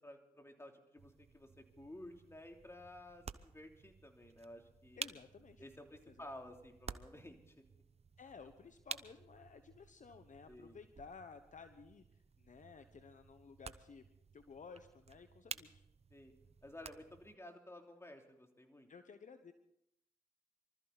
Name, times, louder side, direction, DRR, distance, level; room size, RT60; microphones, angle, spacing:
voice 1, 0.0-5.0 5.6-7.6 10.5-10.8 16.1-16.3 16.6-18.9, left 1 dB, 15° left, 3 dB, 3.2 m, -54 dB
sound 1, 1.0-17.4, right 5 dB, 40° right, 0.8 m, -53 dB
voice 2, 5.0-5.6 6.1-6.3 8.2-12.0 12.4-14.1 14.3-15.8 18.9-19.5, left 5 dB, 55° left, 9 dB, 1.1 m, -55 dB
24.0 x 13.5 x 4.1 m, 0.79 s
supercardioid pair, 45°, 16 cm